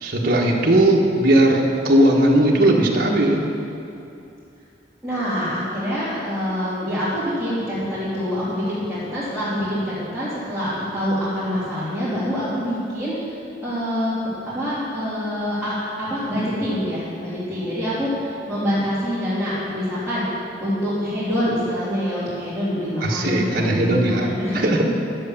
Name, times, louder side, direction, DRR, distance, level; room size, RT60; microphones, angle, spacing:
voice 1, 0.0-3.4 23.0-24.3 24.5-24.8, right 1 dB, 55° right, -3 dB, 1.5 m, -18 dB
voice 2, 5.0-13.3 13.6-20.2 20.6-24.8, equal, ahead, -14 dB, 3.3 m, -25 dB
11.5 x 7.9 x 7.2 m, 2.7 s
head